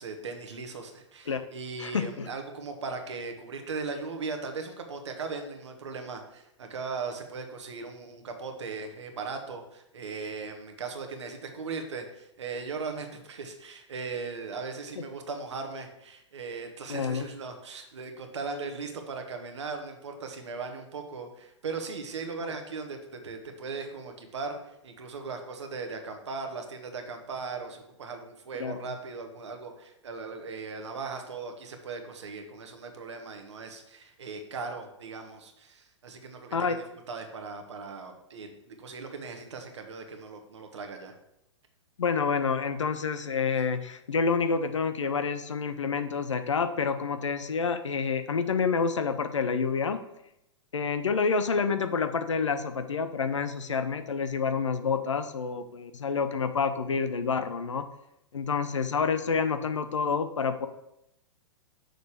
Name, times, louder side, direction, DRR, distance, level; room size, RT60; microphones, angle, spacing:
voice 1, 0.0-36.7 37.1-41.1, right 4 dB, 65° right, 5 dB, 1.4 m, -38 dB
voice 2, 1.8-2.3 16.9-17.3 22.4-22.5 28.6-28.8 36.5-36.8 42.0-50.0 50.7-57.8 58.3-60.7, left 5 dB, 75° left, 10 dB, 0.7 m, -28 dB
6.5 x 4.1 x 6.5 m, 0.82 s
figure-of-eight pair, 105°, 16 cm